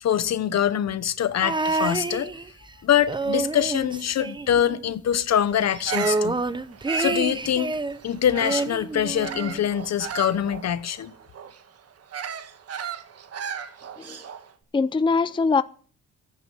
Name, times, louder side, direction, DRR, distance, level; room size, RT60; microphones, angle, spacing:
voice 1, 0.0-2.3 2.8-6.4 7.0-7.8 8.0-11.1, left 10 dB, 60° left, 1.2 m, -24 dB
sound 1, 1.4-2.7 3.0-4.9 5.2-5.3 5.6-8.0 8.4-9.7 10.5-10.6, right 3 dB, 15° right, 0.8 m, -28 dB
Bird vocalization bird call bird song, 5.7-8.8 9.2-14.5, right 8 dB, 55° right, 1.5 m, -36 dB
voice 2, 14.7-15.6, left 4 dB, 15° left, 0.6 m, -22 dB
15.0 x 9.6 x 5.5 m
cardioid pair, 90°, 30 cm